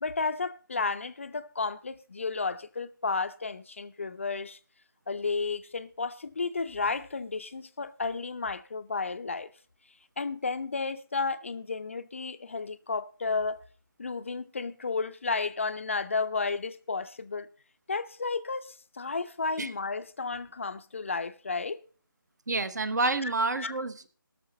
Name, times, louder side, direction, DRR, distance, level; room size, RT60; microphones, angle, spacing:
voice 1, 0.0-4.6 5.1-9.5 10.2-13.6 14.0-17.5 17.9-21.8 23.2-23.3 23.6-23.7, left 4 dB, 35° left, 0.4 m, -32 dB
voice 2, 22.5-24.1, right 3 dB, 50° right, 0.9 m, -29 dB
19.0 x 6.6 x 4.1 m
figure-of-eight pair, 155°, 12 cm